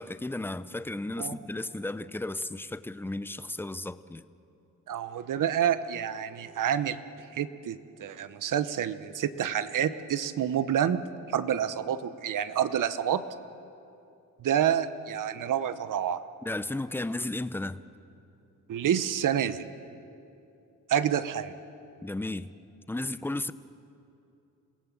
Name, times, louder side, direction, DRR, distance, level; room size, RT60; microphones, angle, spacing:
voice 1, 0.0-4.2 16.4-17.8 22.0-22.5 22.9-23.5, left 2 dB, 5° left, 0.6 m, -34 dB
voice 2, 4.9-7.0 7.3-11.0 11.3-13.2 14.4-16.2 18.7-19.7 20.9-21.5, right 9 dB, 75° right, 1.0 m, -28 dB
27.5 x 17.5 x 7.5 m
cardioid pair, 95°, 32 cm